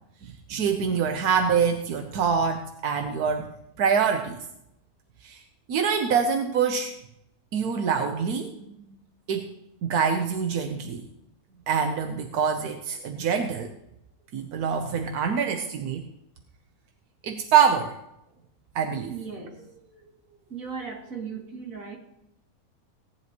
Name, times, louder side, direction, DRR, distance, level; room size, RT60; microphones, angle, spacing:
voice 1, 0.2-3.5 3.8-4.4 5.2-5.4 5.7-6.9 7.5-8.6 8.9-9.0 9.3-9.5 9.8-11.1 11.7-13.7 14.3-16.1 17.2-17.9 18.7-19.2, right 6 dB, 90° right, 5 dB, 1.4 m, -25 dB
voice 2, 19.1-20.0 20.5-22.0, right 5 dB, 65° right, -1 dB, 2.9 m, -37 dB
17.5 x 10.5 x 3.0 m, 0.80 s
omnidirectional pair, 1.6 m